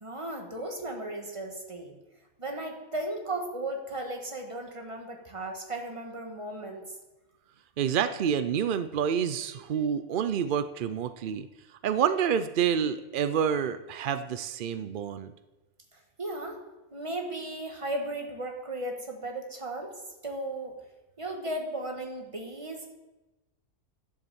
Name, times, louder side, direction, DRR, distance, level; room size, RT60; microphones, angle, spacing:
voice 1, 0.0-1.9 2.4-6.8 15.9-16.6 16.9-19.9 20.2-20.8 21.2-22.9, right 1 dB, 20° right, 2 dB, 1.6 m, -36 dB
voice 2, 7.8-11.5 11.8-15.3, right 8 dB, 70° right, 11 dB, 0.5 m, -28 dB
11.0 x 7.5 x 7.1 m, 1.1 s
omnidirectional pair, 1.5 m